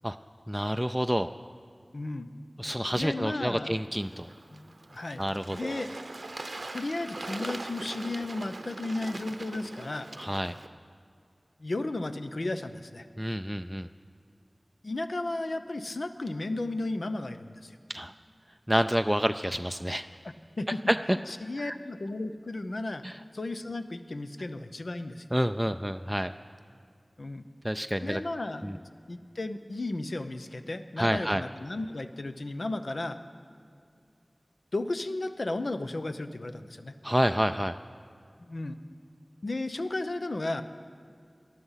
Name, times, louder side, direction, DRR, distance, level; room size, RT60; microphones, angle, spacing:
voice 1, 0.5-1.3 2.6-4.3 5.2-5.8 10.2-10.6 13.2-13.9 17.9-18.1 18.7-20.1 20.9-21.2 21.6-21.8 23.0-23.2 25.3-26.3 27.6-28.2 28.6-28.8 31.0-31.4 37.0-37.8, equal, 5° right, 8 dB, 0.3 m, -28 dB
voice 2, 1.9-2.3 3.0-3.8 4.5-5.2 5.5-5.9 6.7-10.1 11.6-13.1 14.8-17.8 20.6-20.8 21.3-23.0 23.3-25.3 27.2-27.4 28.0-28.8 29.1-33.2 34.7-36.9 38.4-38.8 39.4-40.6, left 2 dB, 85° left, 9 dB, 0.7 m, -34 dB
Bird / Water, 4.0-10.7, right 2 dB, 90° right, 0.6 m, -42 dB
19.5 x 11.5 x 5.7 m, 2.3 s
wide cardioid pair, 50°, 0 cm